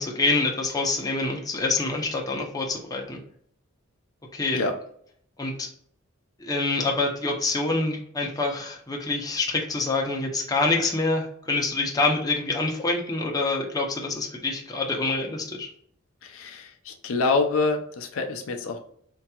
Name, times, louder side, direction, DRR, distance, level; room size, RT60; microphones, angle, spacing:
voice 1, 0.0-3.2 4.3-4.6 5.4-5.7 6.4-15.7, left 3 dB, 20° left, 0 dB, 0.6 m, -26 dB
voice 2, 16.2-18.8, left 3 dB, 70° left, 4 dB, 0.5 m, -26 dB
4.5 x 2.8 x 2.3 m, 0.63 s
head